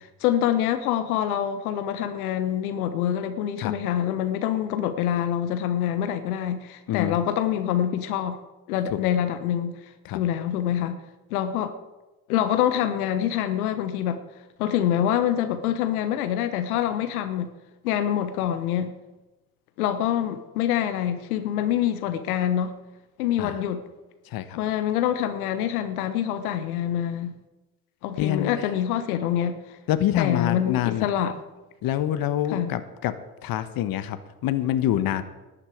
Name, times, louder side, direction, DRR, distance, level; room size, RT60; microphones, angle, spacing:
voice 1, 0.2-8.4 8.7-9.8 10.1-11.0 11.3-11.7 12.3-14.2 14.6-17.5 17.8-18.9 19.8-22.7 23.2-23.8 24.6-27.3 28.0-29.6 30.2-31.4 32.5-32.7, left 10 dB, 80° left, 10 dB, 1.1 m, -25 dB
voice 2, 6.9-7.2 8.9-9.0 10.0-10.2 23.4-23.6 24.2-24.6 28.2-28.5 29.9-31.1 31.8-33.2 33.4-35.2, left 12 dB, 55° left, 12 dB, 1.2 m, -26 dB
12.0 x 8.6 x 8.5 m, 1.1 s
hypercardioid pair, 70°, 43 cm